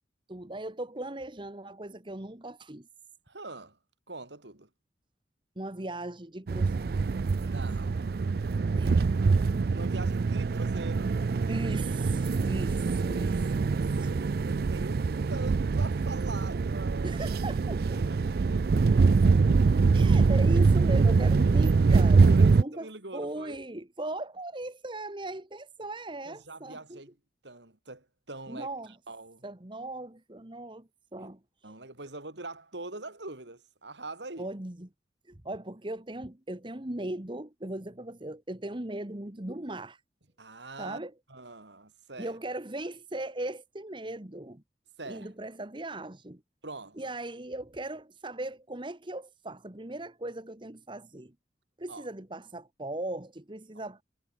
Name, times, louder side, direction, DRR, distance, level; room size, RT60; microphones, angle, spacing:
voice 1, 0.3-2.9 5.5-7.0 8.8-9.1 11.5-14.1 17.0-18.1 19.9-22.9 23.1-27.0 28.5-28.9 29.4-31.7 34.4-34.9 35.3-40.0 40.8-41.1 42.2-44.6 45.1-46.4 47.0-51.3 51.8-54.0, right 1 dB, 25° right, 1.5 m, -38 dB
voice 2, 3.3-3.8 4.1-4.7 7.4-8.1 9.7-11.2 13.4-17.2 17.8-18.2 18.5-19.1 22.2-23.6 26.3-27.1 27.4-29.4 31.2-31.3 31.6-34.5 40.4-41.0 41.3-42.4 45.0-45.3 46.6-47.1 51.9-52.1, right 2 dB, 80° right, 4.1 m, -43 dB
sound 1, 6.5-22.6, right 4 dB, 55° right, 0.4 m, -24 dB
head